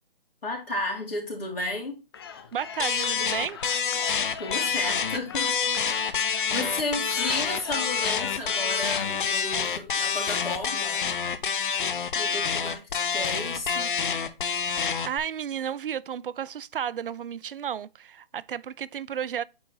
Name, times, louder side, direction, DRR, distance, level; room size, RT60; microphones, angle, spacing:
voice 1, 0.4-2.0 4.4-5.6 6.5-11.0 12.1-13.9, left 2 dB, 80° left, 2.9 m, -33 dB
sound 1, 2.1-9.1, left 7 dB, 25° left, 0.6 m, -42 dB
voice 2, 2.5-3.6 6.5-6.7 15.1-19.4, right 8 dB, 65° right, 0.5 m, -32 dB
sound 2, 2.8-15.2, left 6 dB, 60° left, 0.9 m, -27 dB
8.5 x 4.5 x 2.8 m
figure-of-eight pair, 150°, 29 cm